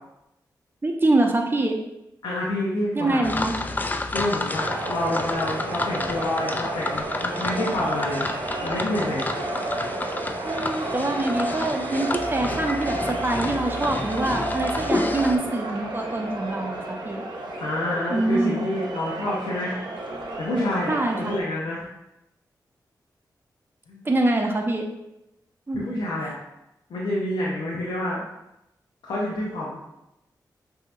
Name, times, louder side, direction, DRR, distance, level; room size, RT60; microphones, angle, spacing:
voice 1, 0.8-1.8 2.9-3.5 10.4-17.3 18.1-18.6 20.9-21.2 24.0-24.9 25.7-25.8, right 2 dB, 30° right, 2 dB, 0.8 m, -25 dB
voice 2, 2.2-3.4 4.1-8.4 8.6-9.3 17.6-19.8 20.4-21.9 23.9-24.0 25.7-26.4 26.9-28.2 29.0-29.8, left 1 dB, 85° left, -5 dB, 0.7 m, -28 dB
sound 1, 3.2-15.4, left 2 dB, 25° left, 0.4 m, -30 dB
sound 2, 4.5-21.4, right 2 dB, 75° right, 0.6 m, -31 dB
5.5 x 2.8 x 2.5 m, 0.88 s
cardioid pair, 45°, 8 cm